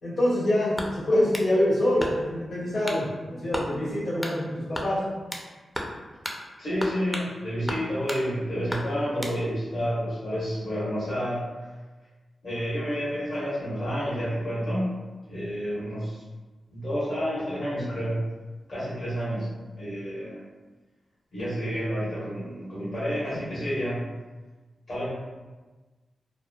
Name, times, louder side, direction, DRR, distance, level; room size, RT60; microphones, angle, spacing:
voice 1, 0.0-5.0, left 1 dB, 85° left, -12 dB, 1.4 m, -25 dB
sound 1, 0.8-1.5 2.0-2.4 2.8-3.0 3.5-3.7 4.2-4.4 4.7-5.5 5.7-6.0 6.2-6.4 6.8-7.3 7.7-8.2 8.7-9.4, equal, 10° left, 0.5 m, -34 dB
voice 2, 6.6-11.5 12.4-15.0 15.3-16.2 16.7-18.2 18.7-20.4 21.3-24.0 24.9-25.1, equal, 65° left, -10 dB, 1.0 m, -29 dB
2.9 x 2.1 x 2.3 m, 1.3 s
supercardioid pair, 45°, 0 cm